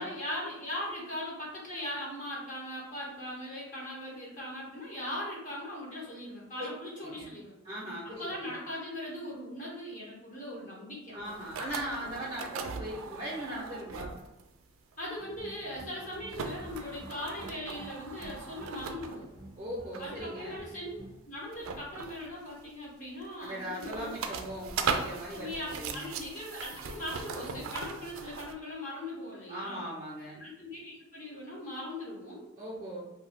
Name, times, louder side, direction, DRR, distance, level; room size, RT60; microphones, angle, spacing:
voice 1, 0.0-7.6 8.2-11.2 15.0-19.3 20.0-20.9 21.2-24.1 25.3-29.8 30.4-32.5, left 1 dB, 40° left, -4 dB, 0.7 m, -39 dB
voice 2, 7.6-8.5 11.1-14.2 19.6-20.6 23.4-26.1 29.5-30.4 32.6-33.0, equal, 25° right, -6 dB, 0.6 m, -39 dB
sound 1, 11.2-14.5 14.9-15.1 15.5-19.4 19.9-20.2 21.5-22.7 23.2-28.5, right 5 dB, 85° right, 0.3 m, -39 dB
sound 2, 15.2-21.2, right 1 dB, 80° left, 1.2 m, -51 dB
2.6 x 2.2 x 3.3 m, 1.0 s
head